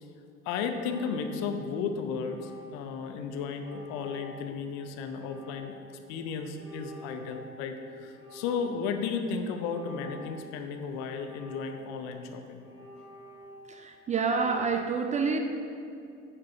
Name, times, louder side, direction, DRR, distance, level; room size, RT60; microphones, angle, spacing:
voice 1, 0.4-5.8 6.1-12.6, left 5 dB, 50° left, 6 dB, 0.7 m, -34 dB
sound 1, 0.7-1.7 2.1-2.9 3.5-4.5 5.1-6.0 6.5-7.8 8.1-8.9 9.5-10.6 11.1-12.0 12.6-13.9 14.3-14.8, equal, 75° left, 1.5 m, -49 dB
voice 2, 13.7-15.4, right 5 dB, 20° right, 5 dB, 0.5 m, -28 dB
9.6 x 3.7 x 4.6 m, 2.6 s
figure-of-eight pair, 60°, 34 cm